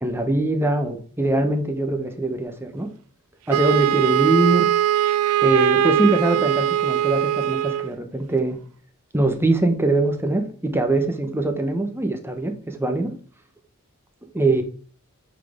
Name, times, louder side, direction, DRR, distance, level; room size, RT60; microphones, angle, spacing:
voice 1, 0.0-2.9 3.5-4.7 5.4-8.6 9.1-13.1 14.3-14.6, right 2 dB, 10° right, 0.9 m, -22 dB
Wind instrument woodwind instrument, 3.5-7.9, right 10 dB, 70° right, 0.3 m, -21 dB
8.1 x 4.2 x 3.5 m
head